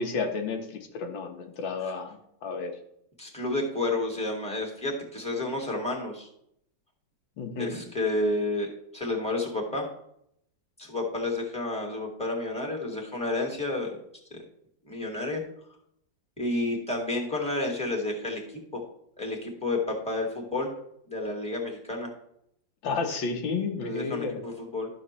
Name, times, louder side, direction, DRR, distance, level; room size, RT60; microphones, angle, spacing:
voice 1, 0.0-2.7 7.4-7.7 22.8-24.4, left 4 dB, 90° left, 4 dB, 2.0 m, -31 dB
voice 2, 3.2-6.3 7.6-9.8 10.8-14.0 14.3-14.4 14.8-15.4 16.4-18.6 19.2-20.7 21.1-22.1 23.8-24.9, left 2 dB, 5° left, -1 dB, 2.1 m, -30 dB
12.5 x 7.1 x 3.2 m, 0.73 s
omnidirectional pair, 2.0 m